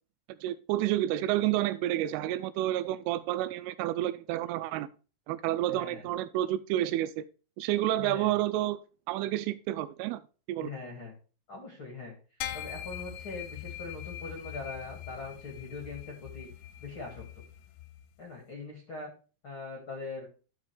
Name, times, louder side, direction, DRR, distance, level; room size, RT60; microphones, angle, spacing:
voice 1, 0.4-4.9 5.3-7.2 7.6-8.8 9.1-10.2 10.5-10.7, right 14 dB, 85° right, 3.0 m, -30 dB
voice 2, 5.7-6.1 7.9-8.4 10.6-11.1 11.5-12.1 12.5-16.5 16.8-17.4 18.2-19.1 19.4-20.3, left 3 dB, 45° left, 1.7 m, -42 dB
sound 1, 12.4-18.0, left 11 dB, 85° left, 3.1 m, -42 dB
13.0 x 5.2 x 3.3 m
omnidirectional pair, 5.8 m